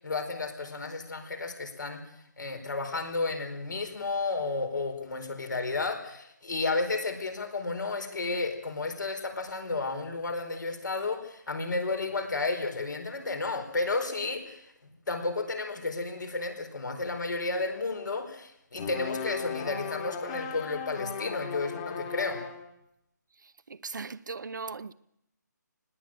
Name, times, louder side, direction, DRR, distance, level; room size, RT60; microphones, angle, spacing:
voice 1, 0.0-2.0 2.4-14.6 15.1-22.4, left 3 dB, 80° left, 4.8 m, -32 dB
sound 1, 18.7-22.7, left 7 dB, 20° left, 1.7 m, -37 dB
voice 2, 23.4-24.9, right 4 dB, 80° right, 0.7 m, -39 dB
20.0 x 16.0 x 8.9 m
hypercardioid pair, 165°, 10 cm